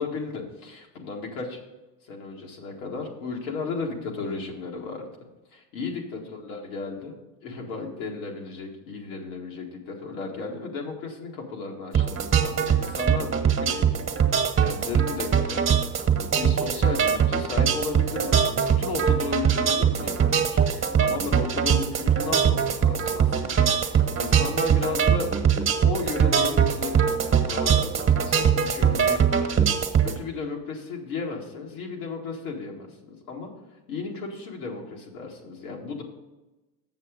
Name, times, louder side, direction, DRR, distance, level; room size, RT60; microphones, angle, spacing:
voice 1, 0.0-1.6 2.1-5.1 5.5-7.1 7.4-25.3 25.8-29.5 30.0-33.5 33.9-36.0, left 4 dB, 90° left, 0 dB, 2.1 m, -34 dB
sound 1, 11.9-30.2, right 7 dB, 30° right, 1.2 m, -22 dB
7.3 x 7.1 x 5.1 m, 1.1 s
supercardioid pair, 90°, 42 cm